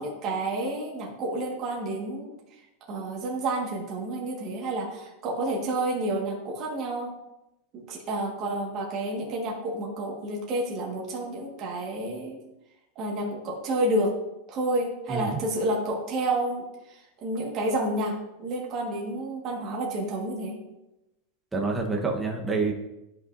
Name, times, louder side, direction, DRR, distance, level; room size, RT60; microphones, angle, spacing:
voice 1, 0.0-2.3 2.9-7.2 7.7-12.4 12.9-14.2 14.5-18.1 18.4-20.6, right 1 dB, 35° right, -2 dB, 1.6 m, -30 dB
voice 2, 15.1-15.4 21.5-22.7, right 4 dB, 10° right, 0 dB, 1.1 m, -27 dB
11.5 x 5.5 x 2.6 m, 0.92 s
supercardioid pair, 145°, 0 cm